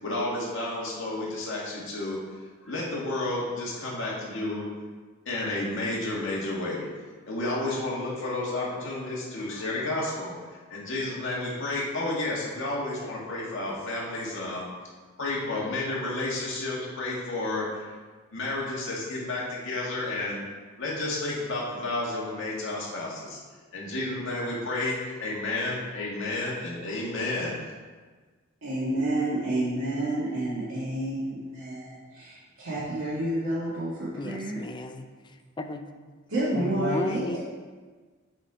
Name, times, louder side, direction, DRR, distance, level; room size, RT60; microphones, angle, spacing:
voice 1, 0.0-2.2 2.6-4.7 5.3-6.9 7.3-14.7 15.2-17.9 18.3-20.4 20.8-23.4 23.7-27.6, left 2 dB, 65° left, -5 dB, 2.0 m, -31 dB
voice 2, 28.6-34.6 36.3-37.4, right 1 dB, 80° right, -10 dB, 1.9 m, -29 dB
voice 3, 34.1-35.1 35.6-35.8 36.5-37.4, left 2 dB, 25° left, 7 dB, 0.5 m, -33 dB
7.9 x 4.2 x 4.8 m, 1.4 s
head